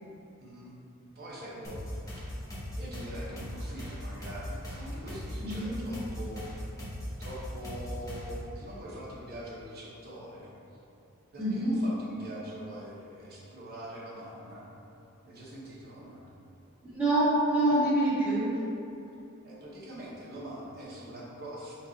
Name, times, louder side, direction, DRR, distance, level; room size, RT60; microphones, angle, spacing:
voice 1, 0.4-0.7 1.1-2.1 2.6-6.5 7.2-10.5 11.3-14.7 15.2-16.3 19.4-21.9, equal, 45° right, -6 dB, 0.9 m, -43 dB
sound 1, 1.6-8.5, equal, 15° left, 0.9 m, -39 dB
voice 2, 5.4-5.8 11.4-11.8 16.8-18.5, right 1 dB, 5° right, -12 dB, 1.3 m, -26 dB
4.5 x 2.4 x 3.9 m, 2.8 s
head